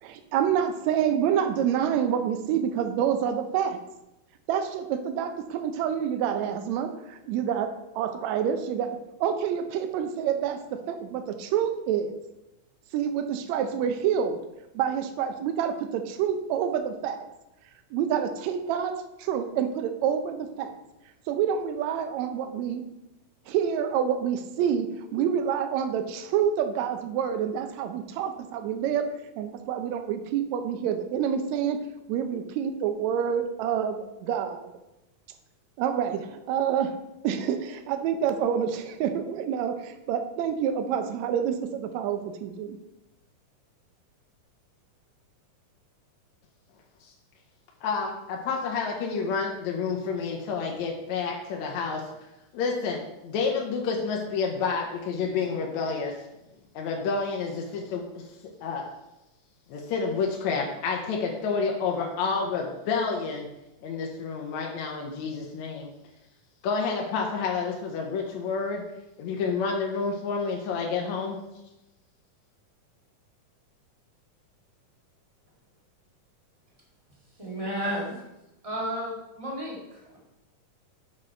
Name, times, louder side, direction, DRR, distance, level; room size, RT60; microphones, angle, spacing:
voice 1, 0.0-3.8 4.5-8.9 9.2-12.1 12.9-14.4 14.7-17.2 17.9-20.8 21.3-22.8 23.5-29.1 29.4-31.8 32.1-34.7 35.8-36.9 37.2-42.8, right 8 dB, 80° right, 8 dB, 1.7 m, -27 dB
voice 2, 47.8-52.0 52.5-56.1 56.8-58.0 58.6-58.9 59.7-63.5 63.8-65.9 66.6-68.8 69.2-71.4, left 5 dB, 70° left, 0 dB, 1.9 m, -29 dB
voice 3, 77.4-78.1 78.6-79.8, equal, 15° right, -5 dB, 1.3 m, -32 dB
6.4 x 6.4 x 4.3 m, 0.93 s
omnidirectional pair, 3.8 m